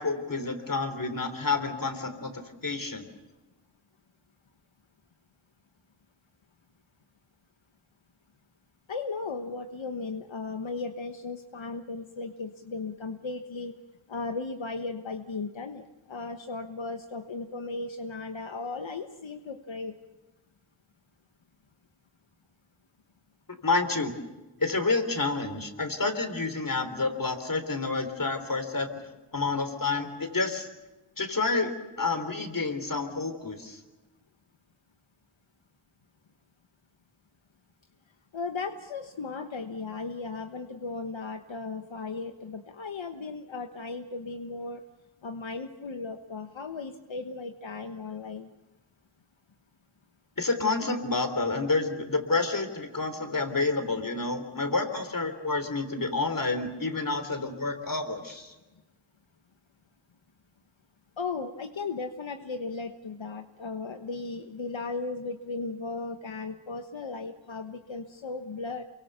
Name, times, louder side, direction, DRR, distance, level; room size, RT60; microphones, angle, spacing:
voice 1, 0.0-3.1 23.6-24.1 24.6-29.1 29.3-30.7 31.2-33.8 50.4-58.5, left 3 dB, 45° left, 8 dB, 3.6 m, -29 dB
voice 2, 8.9-13.7 14.1-19.9 38.3-44.8 45.2-48.5 61.2-68.8, left 3 dB, 80° left, 6 dB, 1.3 m, -36 dB
29.0 x 23.5 x 6.9 m, 1.1 s
wide cardioid pair, 75°, 46 cm